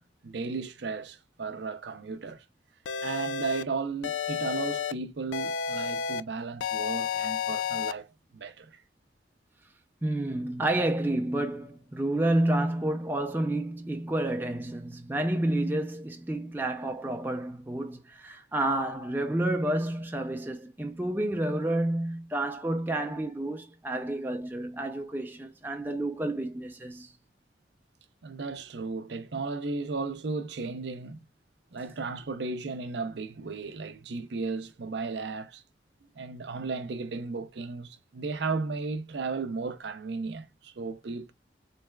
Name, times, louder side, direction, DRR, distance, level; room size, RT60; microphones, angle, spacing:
voice 1, 0.0-2.4 3.0-8.1 8.3-8.8 28.2-31.2 31.7-35.6 36.2-41.3, right 4 dB, 70° right, 0.6 m, -35 dB
sound 1, 2.9-3.6 4.0-4.9 5.3-6.2 6.6-7.9, left 7 dB, 85° left, 0.3 m, -31 dB
voice 2, 10.0-27.1, right 1 dB, 10° right, 0.4 m, -30 dB
4.0 x 3.3 x 2.2 m
head